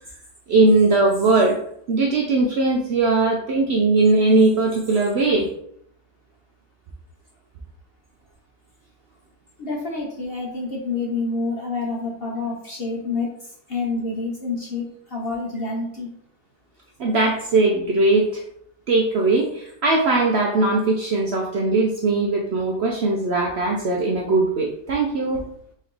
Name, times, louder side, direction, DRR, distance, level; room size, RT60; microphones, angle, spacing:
voice 1, 0.5-1.6 1.9-5.5 17.0-18.4 18.9-25.5, right 3 dB, 70° right, 0 dB, 0.6 m, -19 dB
voice 2, 9.6-16.1, left 3 dB, 50° left, -2 dB, 0.7 m, -28 dB
4.2 x 3.0 x 3.8 m, 0.70 s
omnidirectional pair, 1.7 m